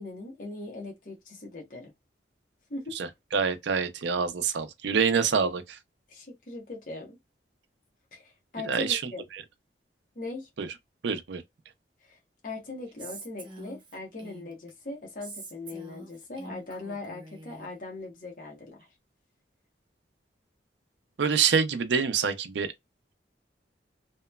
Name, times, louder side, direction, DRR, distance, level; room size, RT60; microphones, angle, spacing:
voice 1, 0.0-1.9 2.7-3.0 6.1-7.2 8.1-9.2 10.2-10.5 12.0-18.9, left 2 dB, 45° left, 0.8 m, -40 dB
voice 2, 2.9-5.8 8.6-9.0 9.3-9.4 10.6-10.7 11.0-11.4 21.2-22.7, right 6 dB, 75° right, 0.5 m, -26 dB
Female speech woman speaking, 13.0-14.7 15.2-17.7, right 3 dB, 25° right, 0.7 m, -45 dB
2.9 x 2.1 x 2.2 m
head